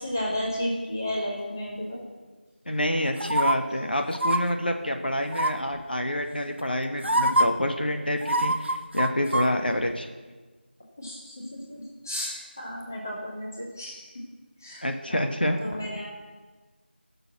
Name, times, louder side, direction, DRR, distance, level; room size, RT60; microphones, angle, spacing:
voice 1, 0.0-2.0 7.0-7.1 11.0-14.1 14.6-15.3 15.6-16.1, left 1 dB, 15° left, -4 dB, 1.5 m, -33 dB
voice 2, 2.7-10.1 14.8-15.7, left 1 dB, 55° left, 4 dB, 1.3 m, -27 dB
sound 1, 3.2-3.5 4.1-4.4 5.3-5.7 6.6-6.7 7.0-7.5 8.2-9.5 9.8-9.9, right 1 dB, 80° right, 1.2 m, -24 dB
16.0 x 6.9 x 6.1 m, 1.3 s
figure-of-eight pair, 175°, 6 cm